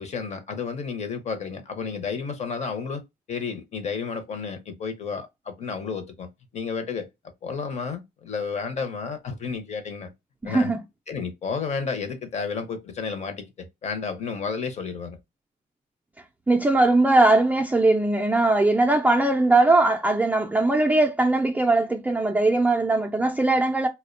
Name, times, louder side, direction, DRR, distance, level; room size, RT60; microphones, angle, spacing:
voice 1, 0.0-3.0 3.3-7.1 7.4-10.1 10.4-10.7 11.1-15.2, left 5 dB, 40° left, 0.7 m, -31 dB
voice 2, 10.4-10.8 16.5-23.9, right 2 dB, 10° right, 0.3 m, -20 dB
2.4 x 2.1 x 2.4 m
cardioid pair, 110°, 17 cm